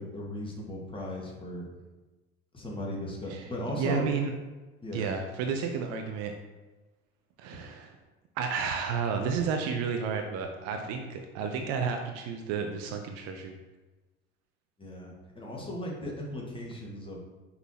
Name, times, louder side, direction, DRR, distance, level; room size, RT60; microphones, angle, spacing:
voice 1, 0.0-1.7 2.5-4.1 4.8-5.1 14.8-17.2, left 1 dB, 15° left, -2 dB, 1.7 m, -37 dB
voice 2, 3.3-4.3 4.9-6.3 7.4-7.9 8.4-13.6, right 6 dB, 50° right, 5 dB, 0.6 m, -32 dB
5.7 x 5.6 x 2.9 m, 1.2 s
figure-of-eight pair, 65°, 35 cm